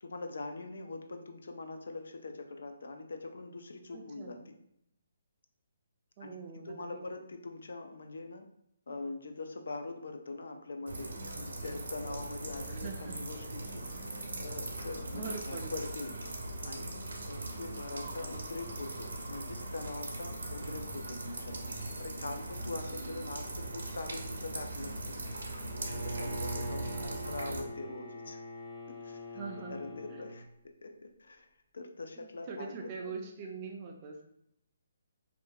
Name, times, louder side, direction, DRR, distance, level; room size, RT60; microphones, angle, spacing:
voice 1, 0.0-4.5 6.2-6.4 6.6-8.5 8.9-16.1 16.6-21.7 22.0-25.2 26.0-28.4 28.9-29.4 29.7-30.5 30.8-31.5 31.7-32.7 33.0-33.1, left 3 dB, 75° left, 5 dB, 0.3 m, -43 dB
voice 2, 3.9-4.4 6.2-7.0 12.7-13.2 15.1-15.7 26.9-27.8 29.3-30.2 32.2-34.2, right 4 dB, 25° right, 2 dB, 0.3 m, -43 dB
sound 1, 10.9-27.6, right 2 dB, 85° right, 0.5 m, -40 dB
Bowed string instrument, 25.6-30.4, equal, 40° left, 0.8 m, -42 dB
2.4 x 2.2 x 2.6 m, 0.76 s
hypercardioid pair, 165°, 0 cm